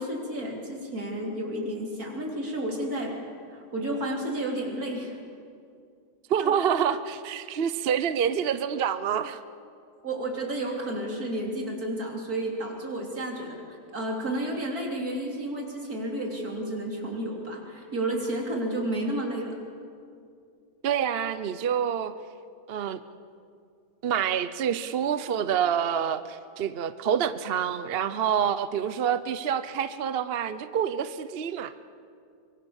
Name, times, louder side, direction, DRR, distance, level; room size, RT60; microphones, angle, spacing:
voice 1, 0.0-3.1 3.5-5.1 6.4-6.5 10.0-19.6, right 1 dB, 80° right, 0 dB, 4.1 m, -31 dB
voice 2, 6.3-9.4 20.8-22.1 22.7-23.0 24.0-31.7, right 8 dB, 50° right, 12 dB, 0.8 m, -27 dB
25.0 x 23.5 x 7.2 m, 2.4 s
omnidirectional pair, 1.6 m